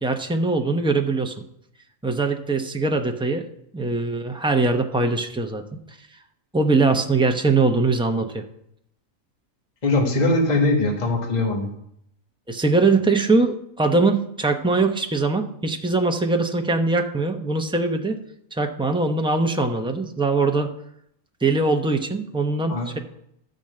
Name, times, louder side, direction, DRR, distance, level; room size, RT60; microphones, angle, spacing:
voice 1, 0.0-1.3 2.0-3.5 3.7-5.6 5.9-6.0 6.5-8.4 12.5-18.2 18.5-20.7 21.4-23.0, right 3 dB, 5° right, 4 dB, 0.4 m, -22 dB
voice 2, 9.8-11.7 22.7-22.9, left 2 dB, 30° left, 1 dB, 1.6 m, -21 dB
12.0 x 5.3 x 7.6 m, 0.74 s
omnidirectional pair, 1.5 m